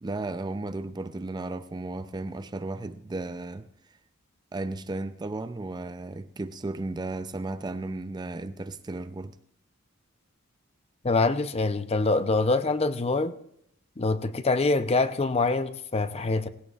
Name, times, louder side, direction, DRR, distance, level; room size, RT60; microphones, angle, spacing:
voice 1, 0.0-3.7 4.5-9.4, right 2 dB, 20° right, 0.4 m, -34 dB
voice 2, 11.0-13.3 14.0-16.5, left 3 dB, 30° left, 0.6 m, -25 dB
18.5 x 17.0 x 2.4 m
head